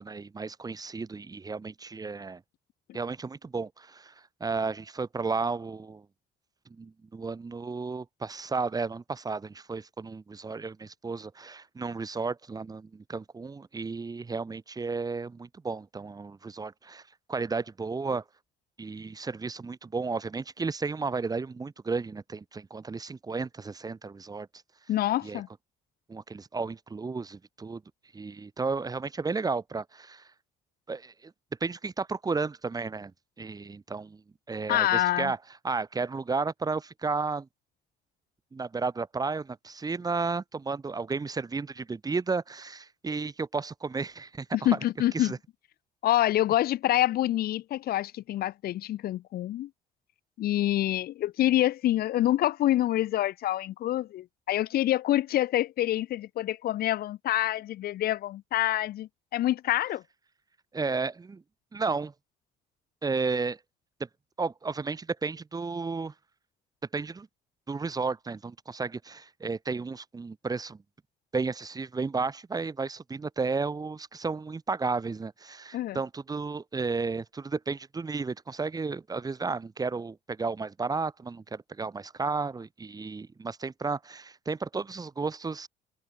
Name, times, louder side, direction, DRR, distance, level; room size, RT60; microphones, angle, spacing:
voice 1, 0.0-2.4 2.9-6.1 6.7-17.0 17.3-18.2 18.8-24.5 25.2-25.4 26.1-27.8 28.1-30.3 30.9-31.3 31.6-33.1 33.4-34.2 34.5-35.4 35.6-37.5 38.5-44.8 45.1-45.4 60.7-61.4 61.7-62.1 63.0-63.6 64.4-66.1 66.9-67.3 67.7-70.8 71.3-85.7, right 4 dB, 20° right, 1.8 m, -33 dB
voice 2, 24.9-25.5 34.7-35.3 44.6-45.3 46.0-49.7 50.4-60.0 75.7-76.0, left 13 dB, 65° left, 1.0 m, -26 dB
cardioid pair, 110°, 17 cm